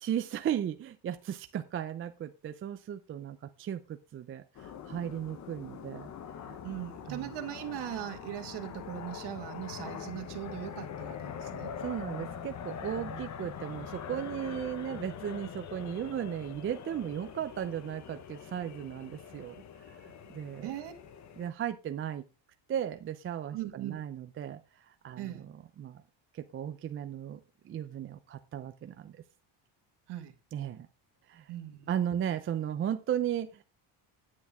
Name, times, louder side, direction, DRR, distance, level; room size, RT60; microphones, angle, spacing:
voice 1, 0.0-6.1 6.5-6.6 7.1-7.3 11.8-20.0 20.3-20.7 21.4-22.2 22.7-24.6 25.0-25.5 25.8-26.0 26.3-27.4 27.6-29.1 30.5-30.9 31.3-31.5 31.9-33.6, right 10 dB, 30° right, 0.4 m, -36 dB
sound 1, 4.5-21.5, left 8 dB, 35° left, 0.9 m, -43 dB
voice 2, 6.6-11.8 13.1-13.2 20.6-20.9 23.5-24.0 25.2-25.5 30.1-30.3 31.5-32.0, right 13 dB, 55° right, 1.8 m, -40 dB
9.6 x 9.3 x 3.6 m
cardioid pair, 160°, 47 cm